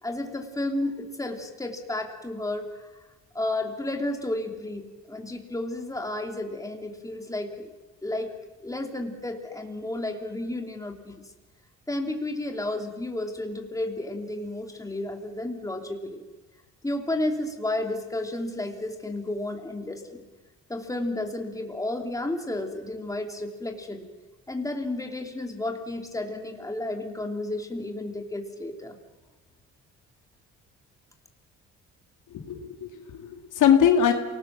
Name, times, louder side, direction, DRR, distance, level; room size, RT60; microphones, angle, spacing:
voice 1, 0.0-3.0 3.3-7.7 8.0-8.3 8.6-11.3 11.9-16.2 16.8-20.3 20.7-24.0 24.5-29.0, left 1 dB, 10° left, 3 dB, 2.9 m, -32 dB
voice 2, 32.3-34.1, left 8 dB, 80° left, 5 dB, 2.4 m, -22 dB
28.0 x 19.5 x 6.1 m, 1.2 s
cardioid pair, 90°, 30 cm